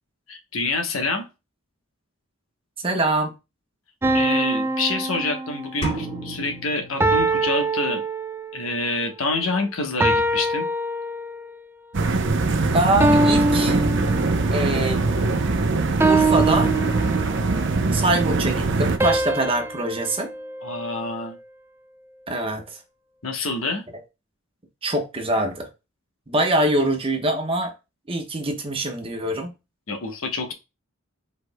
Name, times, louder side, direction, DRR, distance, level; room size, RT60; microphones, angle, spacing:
voice 1, 0.3-1.3 4.1-8.0 8.5-10.7 20.6-21.4 23.2-23.8 29.9-30.5, left 3 dB, 85° left, 1.1 m, -27 dB
voice 2, 2.8-3.3 12.7-13.8 14.5-15.0 16.0-16.7 17.9-20.3 22.3-22.8 24.8-25.7 26.3-27.7 28.1-29.5, right 1 dB, 25° right, 1.1 m, -23 dB
sound 1, 4.0-5.9 7.0-8.7 10.0-11.6 13.0-14.7 16.0-17.6 19.0-21.3, right 2 dB, 10° right, 0.3 m, -24 dB
sound 2, 5.8-7.7, right 1 dB, 30° left, 2.5 m, -32 dB
sound 3, 11.9-19.0, right 3 dB, 60° right, 0.7 m, -22 dB
4.8 x 4.7 x 2.2 m
head